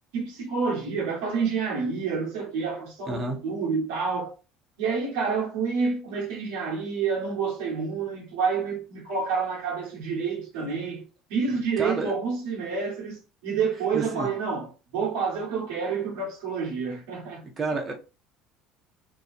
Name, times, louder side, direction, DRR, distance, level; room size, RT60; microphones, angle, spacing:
voice 1, 0.1-4.3 4.8-17.4, right 5 dB, 75° right, 1.1 m, -28 dB
voice 2, 3.1-3.4 11.5-12.2 13.9-14.3 17.6-17.9, right 3 dB, 35° right, 0.9 m, -30 dB
2.7 x 2.3 x 4.0 m
hypercardioid pair, 75°, 0 cm